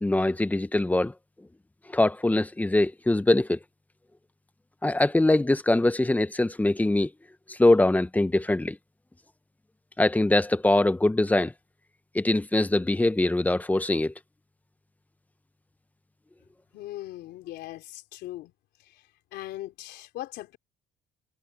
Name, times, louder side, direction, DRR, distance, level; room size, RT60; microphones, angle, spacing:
voice 1, 0.0-1.1 1.9-3.6 4.8-7.1 7.5-8.8 10.0-11.5 12.1-14.1, left 2 dB, 10° left, 1.0 m, -23 dB
voice 2, 16.7-18.5 18.8-19.0 19.3-20.6, left 15 dB, 80° left, 3.6 m, -39 dB
cardioid pair, 110°, 17 cm